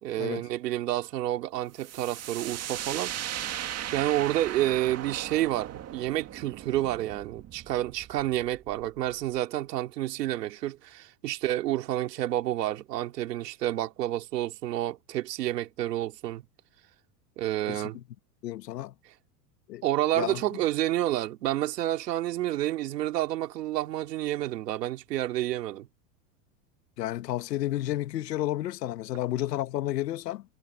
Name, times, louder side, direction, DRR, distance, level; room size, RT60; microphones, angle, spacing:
voice 1, 0.0-3.5 3.9-16.4 17.4-18.0 19.8-25.9, right 14 dB, 85° right, 3.3 m, -29 dB
sound 1, 1.8-9.4, right 11 dB, 30° right, 2.0 m, -38 dB
voice 2, 17.7-18.0 18.4-18.9 19.7-19.8 20.1-20.4 27.0-30.4, left 14 dB, 85° left, 1.5 m, -31 dB
supercardioid pair, 115°, 47 cm